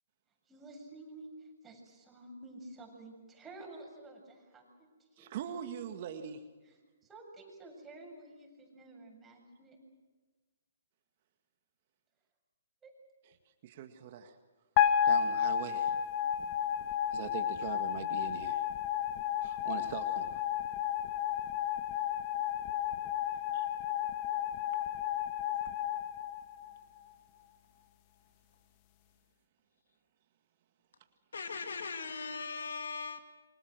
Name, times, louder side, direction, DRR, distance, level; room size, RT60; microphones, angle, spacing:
voice 1, 0.5-4.9 5.2-5.3 7.0-9.8 12.8-12.9 23.3-23.4, right 2 dB, 10° right, 0 dB, 7.7 m, -51 dB
voice 2, 5.2-6.4 13.3-13.4 13.6-14.4 15.1-16.0 17.1-18.6 19.4-20.4 23.5-23.7, right 8 dB, 45° right, 6 dB, 1.8 m, -42 dB
sound 1, 14.8-27.0, left 9 dB, 35° left, 1.8 m, -32 dB
voice 3, 31.3-33.4, left 4 dB, 75° left, 7 dB, 2.4 m, -39 dB
29.0 x 25.0 x 6.6 m, 1.3 s
hypercardioid pair, 140°, 0 cm